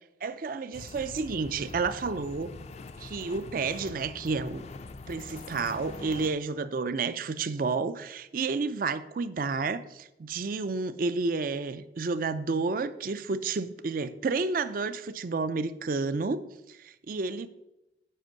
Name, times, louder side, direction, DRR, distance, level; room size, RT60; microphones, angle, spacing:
voice 1, 0.2-2.5 3.0-4.7 5.1-17.5, right 4 dB, 50° right, 14 dB, 0.4 m, -31 dB
sound 1, 0.7-6.3, left 3 dB, 35° left, 0.4 m, -44 dB
7.8 x 5.2 x 6.2 m, 0.94 s
head